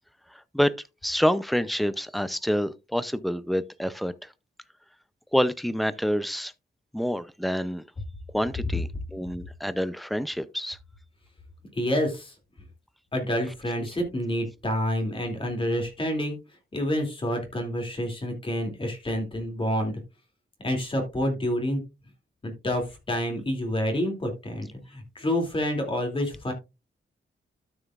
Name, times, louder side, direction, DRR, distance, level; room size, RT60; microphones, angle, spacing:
voice 1, 1.0-4.1 5.3-6.5 6.9-7.8 8.3-10.8, equal, ahead, 0.5 m, -27 dB
voice 2, 11.7-12.3 13.1-16.4 16.7-20.0 20.6-21.8 22.4-26.5, equal, 25° left, 2.7 m, -28 dB
12.5 x 7.0 x 2.4 m
wide cardioid pair, 160°, 19 cm